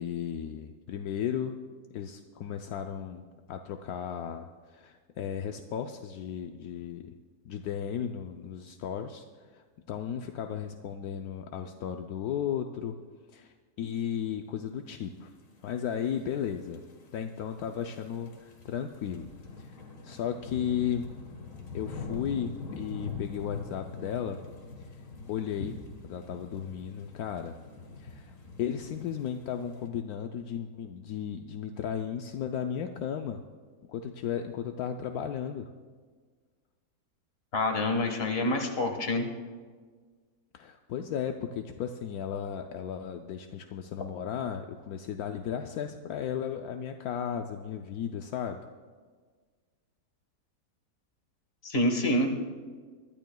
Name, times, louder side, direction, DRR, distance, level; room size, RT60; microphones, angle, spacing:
voice 1, 0.0-1.6 1.9-3.2 3.5-7.0 7.4-9.2 9.5-13.0 13.3-15.3 15.6-16.8 17.1-19.2 19.6-21.1 21.7-24.4 25.3-25.8 26.1-27.6 28.0-33.4 33.9-35.7 40.5-48.6, left 8 dB, 75° left, 5 dB, 1.1 m, -35 dB
sound 1, 15.6-29.9, left 4 dB, 60° left, 1.8 m, -44 dB
voice 2, 37.5-39.3 51.6-52.3, left 1 dB, 40° left, 4 dB, 1.6 m, -27 dB
22.0 x 12.5 x 2.3 m, 1.5 s
omnidirectional pair, 1.6 m